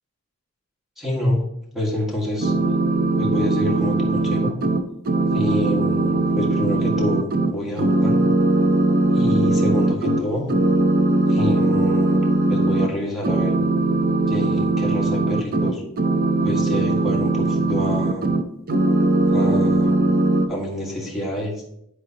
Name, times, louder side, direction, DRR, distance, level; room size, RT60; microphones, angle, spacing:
voice 1, 1.0-1.4 1.7-2.5 3.2-4.6 5.3-8.2 9.1-10.5 11.3-13.6 14.3-15.8 16.4-18.2 19.3-20.0 20.5-21.5, left 1 dB, ahead, -3 dB, 1.7 m, -27 dB
sound 1, 2.4-7.5 7.8-10.2 10.5-12.9 13.2-18.4 18.7-20.5, right 2 dB, 45° right, 0.6 m, -20 dB
11.0 x 4.8 x 2.9 m, 0.76 s
head